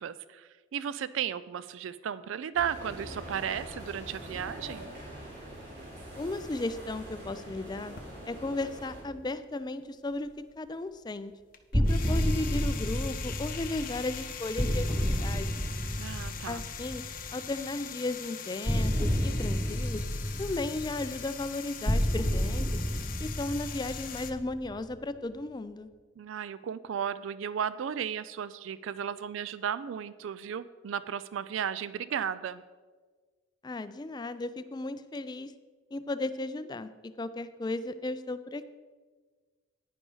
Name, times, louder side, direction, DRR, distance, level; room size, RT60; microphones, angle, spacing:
voice 1, 0.0-4.9 16.0-16.6 26.2-32.6, right 8 dB, 75° right, 16 dB, 0.3 m, -34 dB
sound 1, 2.5-9.0, right 1 dB, 55° right, 3.2 m, -44 dB
voice 2, 6.2-7.9 8.3-11.3 11.7-15.5 16.5-17.0 17.3-20.0 20.4-22.8 23.2-25.9 33.6-35.5 35.9-38.6, left 2 dB, 20° left, 12 dB, 0.3 m, -35 dB
sound 2, 7.9-9.6 9.9-24.3, left 8 dB, 45° left, 0.7 m, -42 dB
sound 3, 11.7-17.5 18.6-24.9, equal, 20° right, 2.0 m, -30 dB
10.0 x 9.8 x 3.9 m, 1.4 s
head